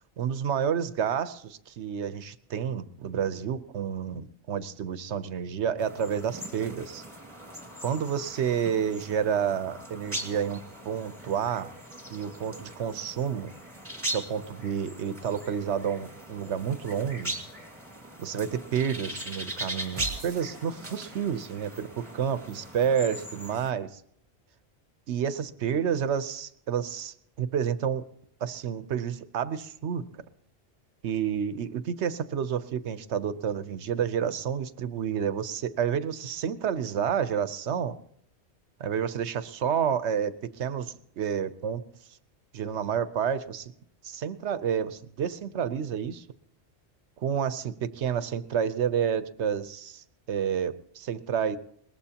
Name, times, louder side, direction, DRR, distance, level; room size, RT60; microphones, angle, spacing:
voice 1, 0.2-7.0 7.8-11.7 12.1-13.5 14.1-17.4 18.2-24.0 25.1-28.0 28.4-30.2 31.0-38.0 38.8-41.8 42.5-43.7 44.0-46.2 47.2-51.6, right 8 dB, 80° right, 13 dB, 1.1 m, -30 dB
sound 1, 5.8-23.7, right 1 dB, 10° right, 2.2 m, -40 dB
sound 2, 20.0-21.2, right 5 dB, 45° right, 0.9 m, -40 dB
22.0 x 19.5 x 2.9 m, 0.67 s
omnidirectional pair, 1.2 m